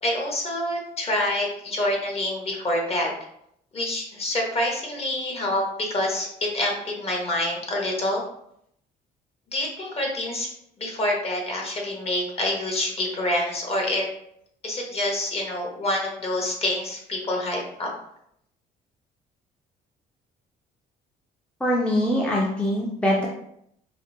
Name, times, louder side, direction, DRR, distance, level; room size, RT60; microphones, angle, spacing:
voice 1, 0.0-3.1 3.7-8.2 9.5-10.5 10.8-14.1 14.6-17.9, left 1 dB, 35° left, 0 dB, 1.0 m, -27 dB
voice 2, 21.6-23.3, left 1 dB, 5° left, -3 dB, 0.5 m, -23 dB
5.0 x 2.0 x 2.6 m, 0.73 s
cardioid pair, 110°, 17 cm